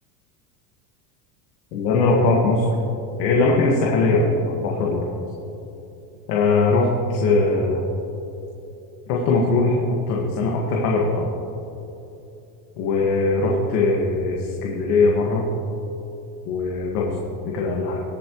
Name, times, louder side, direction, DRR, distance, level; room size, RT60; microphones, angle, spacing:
voice 1, 1.7-2.7 3.2-5.0 6.3-7.8 9.1-11.3 12.8-15.4 16.5-17.2 17.4-18.0, left 3 dB, 85° left, -2 dB, 1.9 m, -20 dB
20.5 x 8.5 x 3.1 m, 2.9 s
supercardioid pair, 130°, 46 cm